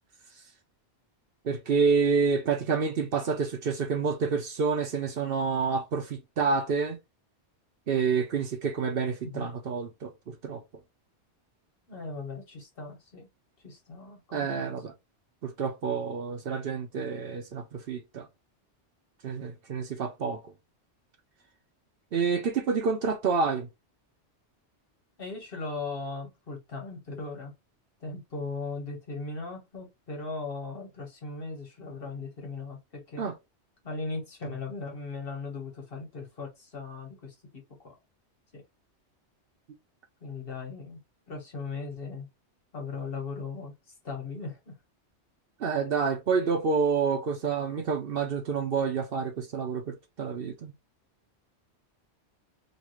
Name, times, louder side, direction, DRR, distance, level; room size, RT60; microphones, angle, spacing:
voice 1, 1.4-7.0 7.9-10.6 14.3-14.9 15.4-18.3 19.2-20.4 22.1-23.7 33.2-33.3 45.6-50.7, right 5 dB, 60° right, 0.8 m, -28 dB
voice 2, 11.9-13.3 13.6-14.8 25.2-27.5 28.0-33.3 33.8-37.9 38.5-38.6 40.2-41.0 41.3-42.3 42.7-43.7 44.0-44.7, left 3 dB, 55° left, 1.5 m, -38 dB
3.0 x 2.6 x 3.0 m
omnidirectional pair, 1.2 m